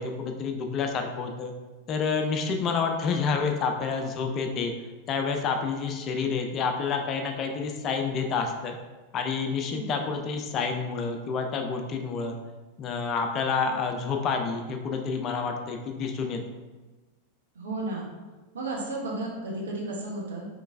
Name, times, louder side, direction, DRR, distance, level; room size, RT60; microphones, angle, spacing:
voice 1, 0.0-1.5 1.9-4.7 5.1-8.8 9.1-12.4 12.8-16.4, left 5 dB, 35° left, 4 dB, 0.4 m, -29 dB
voice 2, 9.6-9.9 17.5-18.1 18.5-20.5, right 2 dB, 65° right, -2 dB, 0.8 m, -33 dB
3.7 x 3.1 x 2.5 m, 1.2 s
figure-of-eight pair, 90°, 0 cm